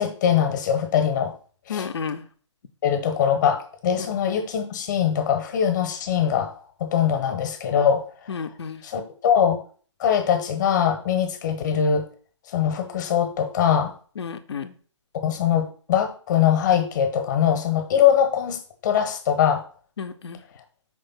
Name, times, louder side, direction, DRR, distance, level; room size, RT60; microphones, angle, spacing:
voice 1, 0.0-1.3 1.7-1.9 2.8-6.5 6.8-8.3 8.8-9.6 10.0-12.1 12.5-13.9 15.2-19.6, left 8 dB, 40° left, 1.1 m, -22 dB
voice 2, 1.7-2.2 4.0-4.1 8.3-8.8 14.2-14.7 20.0-20.4, left 6 dB, 60° left, 0.8 m, -32 dB
5.3 x 3.4 x 5.6 m
figure-of-eight pair, 140°, 16 cm